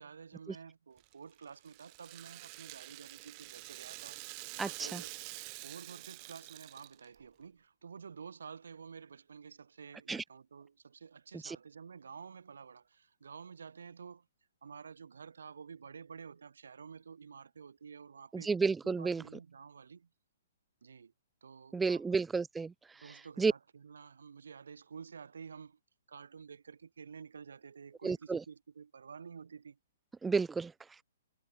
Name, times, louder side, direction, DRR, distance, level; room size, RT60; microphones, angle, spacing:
voice 1, 0.0-5.2 5.6-14.3 14.6-18.5 18.8-20.1 20.8-21.1 21.4-22.2 23.0-25.8 26.1-29.8, right 6 dB, 75° right, 6.6 m, -50 dB
Rattle (instrument), 1.0-7.2, right 40 dB or more, 35° right, 2.4 m, -47 dB
voice 2, 4.6-5.0 10.1-10.2 11.4-11.6 18.3-19.2 21.7-22.7 23.4-23.5 28.0-28.4 30.2-30.7, right 4 dB, 10° right, 0.9 m, -31 dB
hypercardioid pair, 130°, 0 cm